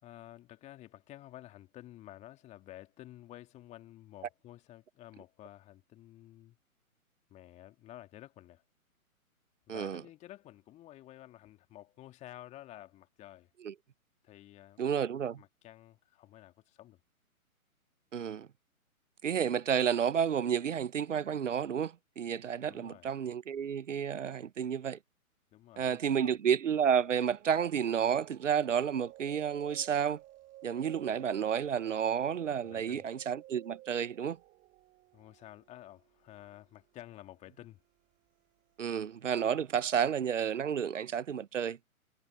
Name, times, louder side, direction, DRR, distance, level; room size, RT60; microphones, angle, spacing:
voice 1, 0.0-6.6 7.3-8.6 9.7-13.5 14.2-14.8 15.4-17.0 22.6-23.1 25.5-26.4 32.6-33.0 35.1-37.8, left 14 dB, 15° left, 2.1 m, -52 dB
voice 2, 9.7-10.0 13.6-13.7 14.8-15.4 18.1-18.5 19.2-25.0 25.8-30.2 30.6-34.4 38.8-41.8, right 8 dB, 60° right, 1.0 m, -31 dB
sound 1, 27.0-39.8, right 16 dB, 20° right, 4.9 m, -55 dB
figure-of-eight pair, 130°, 43 cm